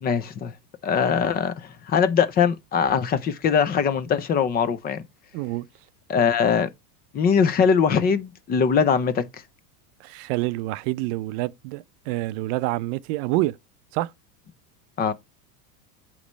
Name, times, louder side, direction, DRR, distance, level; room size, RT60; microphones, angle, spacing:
voice 1, 0.0-0.5 0.8-5.0 6.1-6.7 7.1-9.3 15.0-15.1, left 6 dB, 20° left, 0.5 m, -21 dB
voice 2, 5.3-5.7 10.0-13.5 13.9-14.1, right 18 dB, 45° right, 0.6 m, -27 dB
8.4 x 3.2 x 6.1 m
supercardioid pair, 145°, 48 cm